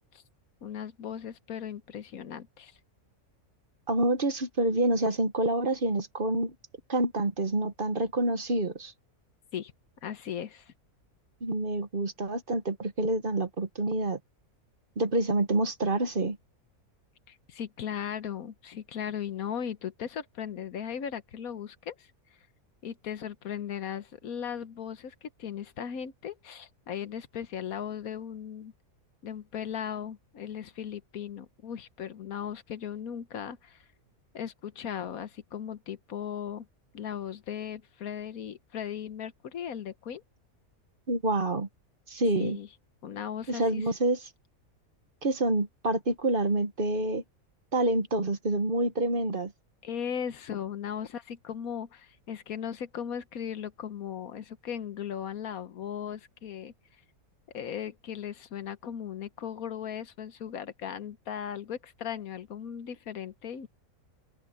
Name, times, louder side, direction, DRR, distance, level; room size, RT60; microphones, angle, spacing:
voice 1, 0.6-2.7 9.5-9.7 10.0-10.7 17.3-22.1 22.8-28.7 29.2-33.8 34.3-36.7 36.9-40.2 42.4-42.7 43.0-43.8 49.8-56.7 57.5-63.7, left 8 dB, 80° left, 1.5 m, -37 dB
voice 2, 3.9-6.5 6.9-8.9 11.4-14.2 15.0-16.4 41.1-41.7 42.1-42.6 43.5-44.3 45.2-47.2 47.7-49.5, right 2 dB, 40° right, 1.2 m, -27 dB
omnidirectional pair, 1.5 m